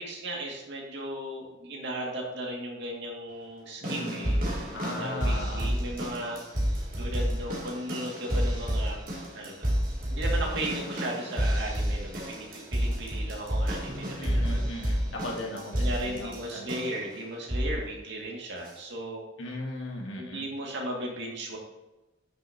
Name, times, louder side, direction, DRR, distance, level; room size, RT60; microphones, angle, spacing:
voice 1, 0.0-4.4 4.9-6.4 7.0-9.0 9.3-9.7 10.1-14.7 15.8-19.3 20.2-21.6, right 1 dB, 65° right, -2 dB, 2.1 m, -36 dB
voice 2, 3.8-5.7 14.2-17.0 19.4-20.4, left 1 dB, 80° left, -1 dB, 1.8 m, -38 dB
sound 1, 3.8-17.1 17.5-17.9 18.6-18.7, equal, 50° right, 2.7 m, -30 dB
9.6 x 6.4 x 2.9 m, 1.0 s
head